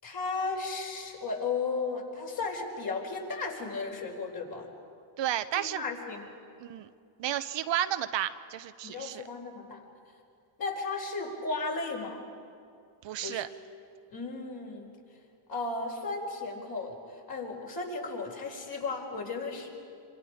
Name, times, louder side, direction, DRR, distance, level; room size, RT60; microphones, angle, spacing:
voice 1, 0.0-4.7 5.5-6.3 8.9-9.8 10.6-12.2 13.2-13.4 14.1-14.9 15.5-17.0 17.3-19.7, left 4 dB, 45° left, 0 dB, 4.8 m, -35 dB
voice 2, 5.2-5.8 6.6-6.9 7.2-9.2 13.0-13.5, right 12 dB, 60° right, 11 dB, 0.9 m, -32 dB
26.5 x 26.0 x 5.1 m, 2.4 s
cardioid pair, 105°, 49 cm